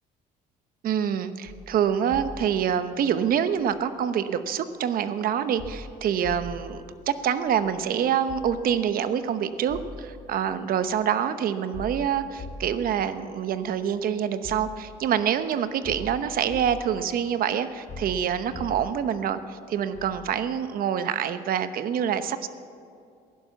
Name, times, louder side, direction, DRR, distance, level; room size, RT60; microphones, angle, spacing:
voice 1, 0.8-22.5, right 8 dB, 60° right, 11 dB, 0.9 m, -26 dB
sound 1, 1.5-1.6 2.1-2.3 3.6-3.7 5.6-5.8 6.2-6.5 7.6-7.7 8.3-8.5 9.7-9.9 10.4-10.5 11.7-12.9 13.8-13.9 14.4-14.7 15.8-16.7 17.9-19.0 19.9-20.2, left 3 dB, 45° left, 1.8 m, -40 dB
16.0 x 11.0 x 7.2 m, 2.5 s
cardioid pair, 110°, 17 cm